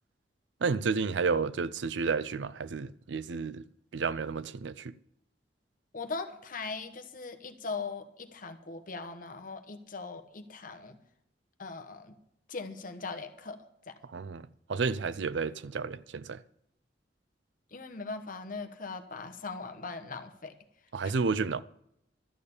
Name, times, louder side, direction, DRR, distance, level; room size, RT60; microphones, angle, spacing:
voice 1, 0.6-3.6 3.9-4.9 14.1-16.4 20.9-21.6, right 5 dB, 85° right, 0.5 m, -31 dB
voice 2, 5.9-11.0 11.6-12.1 12.5-13.6 13.9-14.0 17.7-20.5 21.0-21.2, left 4 dB, 50° left, 1.2 m, -40 dB
12.5 x 6.7 x 8.4 m
head